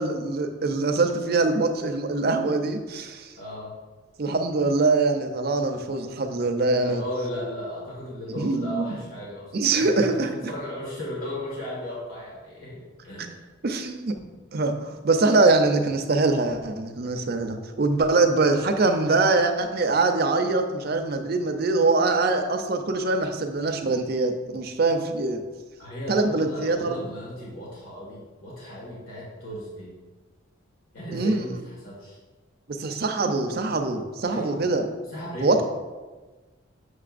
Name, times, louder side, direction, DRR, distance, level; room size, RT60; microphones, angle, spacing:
voice 1, 0.0-3.3 4.2-7.0 8.3-9.0 9.5-10.5 13.6-14.2 14.5-14.7 15.0-25.4 26.1-27.0 31.1-31.6 32.7-34.8 35.4-35.6, right 3 dB, 50° right, 6 dB, 0.5 m, -23 dB
voice 2, 3.3-3.7 6.8-12.7 13.0-13.4 25.8-29.9 30.9-32.2 34.3-34.7 35.1-35.6, left 1 dB, 80° left, -6 dB, 1.8 m, -35 dB
6.7 x 6.6 x 2.5 m, 1.3 s
head